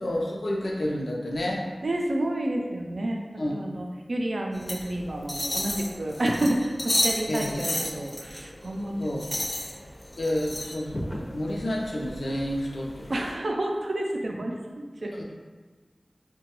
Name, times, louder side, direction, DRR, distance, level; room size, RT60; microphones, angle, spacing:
voice 1, 0.0-1.7 3.4-3.5 7.3-7.6 9.0-9.3 10.2-13.1 15.2-15.3, left 1 dB, 80° left, -2 dB, 0.5 m, -30 dB
voice 2, 1.8-3.2 3.5-9.2 9.6-9.8 13.1-15.1, right 1 dB, 75° right, 0 dB, 0.4 m, -30 dB
sound 1, 4.5-13.3, left 1 dB, 30° left, 0.5 m, -33 dB
3.8 x 2.2 x 2.9 m, 1.3 s
wide cardioid pair, 65°, 0 cm